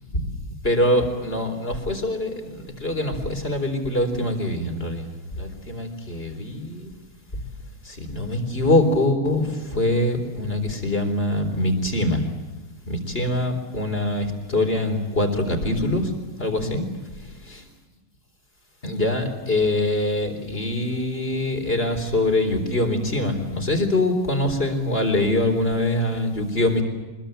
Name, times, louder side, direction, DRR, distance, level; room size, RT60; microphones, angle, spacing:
voice 1, 0.6-6.9 7.8-12.3 12.9-16.1 16.4-16.8 18.8-26.8, left 1 dB, 25° left, 5 dB, 4.2 m, -24 dB
25.5 x 22.0 x 9.0 m, 1.2 s
omnidirectional pair, 2.4 m